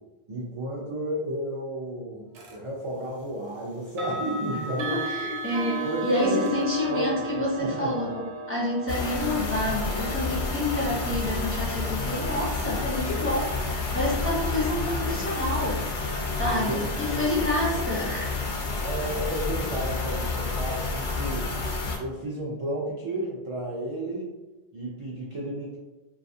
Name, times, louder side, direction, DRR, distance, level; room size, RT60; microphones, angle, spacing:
voice 1, 0.3-5.0 5.8-6.5 6.9-7.1 7.3-8.1 16.5-17.2 18.8-21.5 22.0-24.3 24.7-25.8, right 1 dB, 60° right, -4 dB, 0.3 m, -33 dB
sound 1, 2.3-2.6 3.9-14.7, right 3 dB, 85° right, 0.9 m, -36 dB
voice 2, 4.8-15.8 16.4-18.4, left 1 dB, 15° left, -6 dB, 0.6 m, -28 dB
sound 2, 8.9-22.0, left 3 dB, 60° left, 0.6 m, -29 dB
2.4 x 2.3 x 2.6 m, 1.1 s
omnidirectional pair, 1.1 m